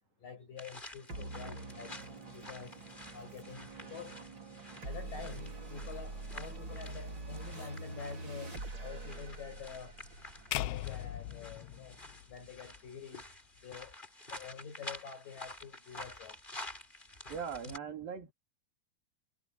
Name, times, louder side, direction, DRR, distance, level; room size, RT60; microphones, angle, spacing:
voice 1, 0.2-2.0 2.3-2.8 3.1-4.2 4.8-10.0 10.6-12.0 12.3-13.2 13.6-13.9 14.3-16.4 17.0-17.1 17.7-17.8, left 6 dB, 60° left, 7.8 m, -47 dB
sound 1, 0.6-17.8, left 1 dB, 15° left, 4.0 m, -50 dB
sound 2, 1.1-11.9, right 2 dB, 30° right, 4.5 m, -45 dB
sound 3, 10.5-12.8, left 15 dB, 90° left, 2.7 m, -39 dB
voice 2, 17.3-18.3, right 7 dB, 70° right, 5.3 m, -40 dB
omnidirectional pair, 4.3 m